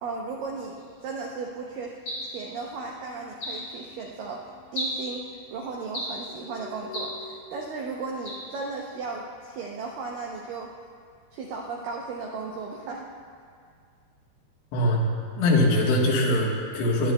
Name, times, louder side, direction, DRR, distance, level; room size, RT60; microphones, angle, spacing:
voice 1, 0.0-1.9 2.2-4.4 4.7-5.3 5.5-10.7 11.3-13.1, right 4 dB, 80° right, -2 dB, 2.0 m, -35 dB
sound 1, 2.1-7.3, left 6 dB, 65° left, 2.1 m, -49 dB
sound 2, 2.1-2.4 3.4-3.7 4.7-5.1 5.9-6.3 6.9-7.2 8.3-8.5, equal, 35° left, 2.0 m, -33 dB
voice 2, 14.7-15.0 15.4-17.1, left 1 dB, 85° left, -2 dB, 3.5 m, -22 dB
18.5 x 10.5 x 2.2 m, 2.1 s
omnidirectional pair, 4.9 m